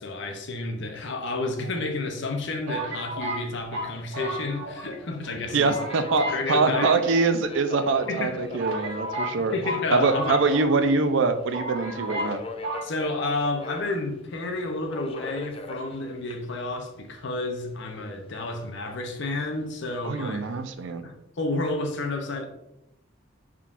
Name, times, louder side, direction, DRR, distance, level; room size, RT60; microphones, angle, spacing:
voice 1, 0.0-5.8 6.3-6.9 8.1-8.4 9.5-10.4 12.8-20.4 21.0-22.5, left 2 dB, 60° left, 0.7 m, -30 dB
sound 1, 1.2-2.0 2.7-5.0 5.2-5.3 5.6-6.4 6.7-7.7 8.2-8.3 8.6-10.9 11.2-11.3 11.5-12.4 12.6-12.9, right 1 dB, 85° right, 1.0 m, -33 dB
Subway metro underground, 2.4-20.9, left 3 dB, 30° left, 0.3 m, -43 dB
voice 2, 5.5-9.5 9.9-12.4 20.0-21.0, right 3 dB, 65° right, 0.4 m, -24 dB
5.7 x 3.7 x 2.5 m
head